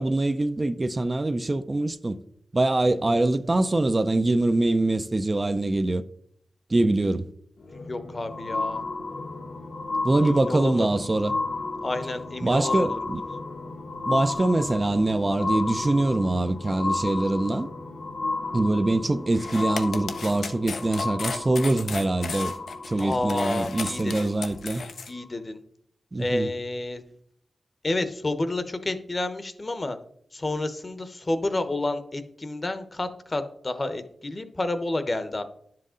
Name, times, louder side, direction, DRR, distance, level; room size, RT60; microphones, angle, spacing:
voice 1, 0.0-2.2 2.5-6.0 6.7-7.3 10.0-11.3 12.4-13.2 14.1-17.7 18.5-22.5 22.9-24.9 26.1-26.5, right 2 dB, 30° right, 0.5 m, -24 dB
sound 1, 7.6-24.4 25.2-25.3, left 3 dB, 65° left, 1.1 m, -33 dB
voice 2, 7.7-8.8 10.2-10.9 11.8-13.0 23.0-24.3 25.1-25.6 26.2-27.0 27.8-30.0 30.3-35.4, left 2 dB, 35° left, 1.0 m, -30 dB
sound 2, 19.3-25.1, left 4 dB, 85° left, 0.9 m, -35 dB
11.0 x 7.6 x 3.8 m
wide cardioid pair, 85°, 0 cm